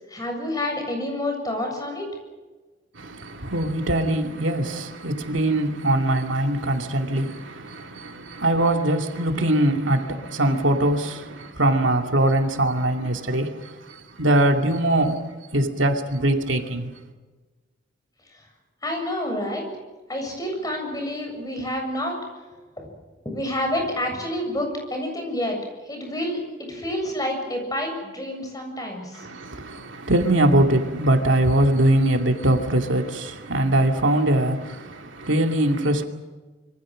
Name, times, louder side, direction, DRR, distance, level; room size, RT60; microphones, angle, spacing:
voice 1, 0.1-2.1 18.8-19.7 20.1-22.3 22.8-22.9 23.3-25.6 25.9-29.3, left 1 dB, 20° left, 7.6 m, -28 dB
voice 2, 3.0-13.7 14.2-15.2 15.5-16.9 29.2-36.1, right 1 dB, 85° right, 2.5 m, -22 dB
27.0 x 24.5 x 6.4 m
head